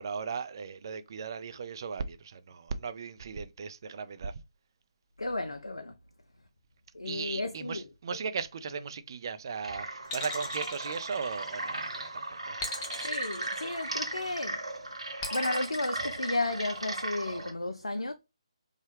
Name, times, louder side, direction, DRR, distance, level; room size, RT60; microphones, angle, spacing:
voice 1, 0.0-4.4 7.1-12.6, right 5 dB, 45° right, 0.4 m, -37 dB
voice 2, 5.2-5.9 6.9-7.9 13.0-14.6 15.3-18.1, left 2 dB, 85° left, 0.4 m, -33 dB
sound 1, 9.6-17.5, right 2 dB, 75° right, 0.9 m, -37 dB
sound 2, 10.1-11.7 12.6-14.3 15.2-16.8, left 2 dB, 20° left, 0.6 m, -40 dB
3.1 x 2.3 x 3.2 m
figure-of-eight pair, 150°, 3 cm